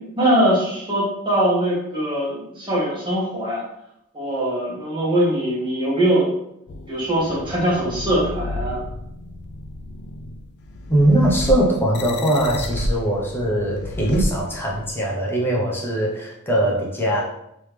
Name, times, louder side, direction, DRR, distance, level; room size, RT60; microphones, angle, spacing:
voice 1, 0.2-3.6 4.1-6.3 6.9-8.8, right 1 dB, 20° right, -6 dB, 1.4 m, -21 dB
sound 1, 6.7-15.0, left 1 dB, 50° left, 0.4 m, -31 dB
voice 2, 10.9-17.2, right 1 dB, 10° left, -4 dB, 0.8 m, -21 dB
3.4 x 3.1 x 3.3 m, 0.79 s
head